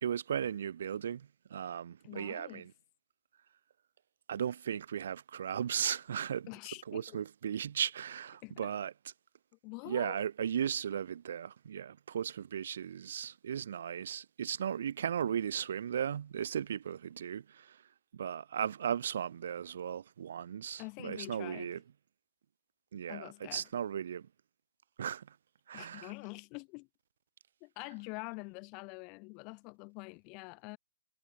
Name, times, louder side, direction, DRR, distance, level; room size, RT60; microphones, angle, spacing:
voice 1, 0.0-2.7 4.3-6.5 6.9-8.9 9.9-17.8 18.1-21.8 22.9-24.3 25.0-25.4 25.7-26.1, right 8 dB, 55° right, 0.3 m, -36 dB
voice 2, 2.0-2.6 6.5-7.2 8.4-8.7 9.6-10.2 20.8-21.7 23.1-23.7 25.7-26.9 27.6-30.8, left 33 dB, 25° left, 1.6 m, -45 dB
hypercardioid pair, 155°, 0 cm